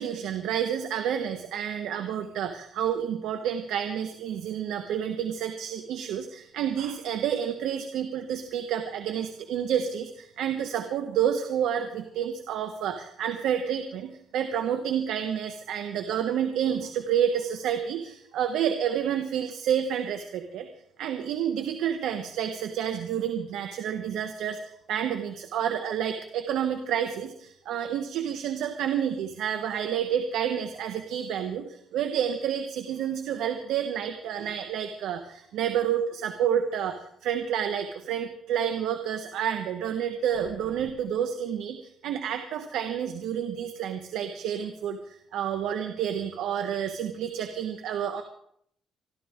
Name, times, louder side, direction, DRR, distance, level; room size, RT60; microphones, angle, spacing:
voice 1, 0.0-20.7 21.0-24.6 24.9-36.9 37.2-48.2, right 9 dB, 80° right, 7 dB, 1.3 m, -29 dB
27.0 x 13.0 x 3.7 m, 0.68 s
cardioid pair, 90°, 0 cm